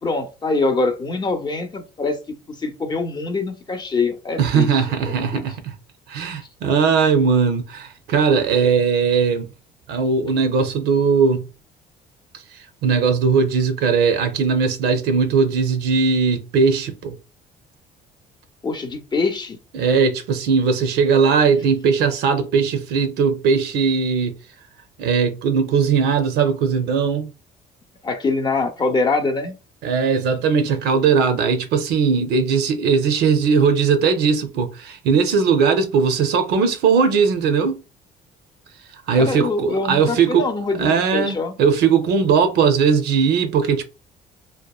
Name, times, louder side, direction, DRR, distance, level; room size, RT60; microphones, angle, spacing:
voice 1, 0.0-2.2 2.6-5.4 18.6-19.6 28.0-29.6 39.2-41.5, left 3 dB, 25° left, 0.5 m, -24 dB
voice 2, 4.4-5.7 6.1-9.5 9.9-11.5 12.8-17.2 19.7-24.3 25.0-27.3 29.8-37.8 39.1-40.5 40.8-43.8, right 5 dB, 80° right, 0.5 m, -19 dB
2.8 x 2.1 x 2.3 m
cardioid pair, 110°, 17 cm